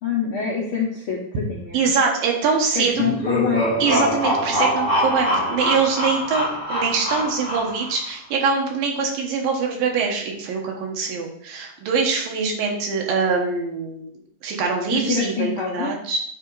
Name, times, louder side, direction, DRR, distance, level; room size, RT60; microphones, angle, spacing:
voice 1, 0.0-1.9 2.7-3.7 14.9-15.9, left 6 dB, 65° left, -4 dB, 1.4 m, -25 dB
voice 2, 1.7-3.0 3.8-14.1 14.4-16.2, right 5 dB, 85° right, 0 dB, 3.0 m, -23 dB
sound 1, 2.9-8.0, equal, 30° right, 1.7 m, -24 dB
8.8 x 3.5 x 4.7 m, 0.68 s
omnidirectional pair, 3.9 m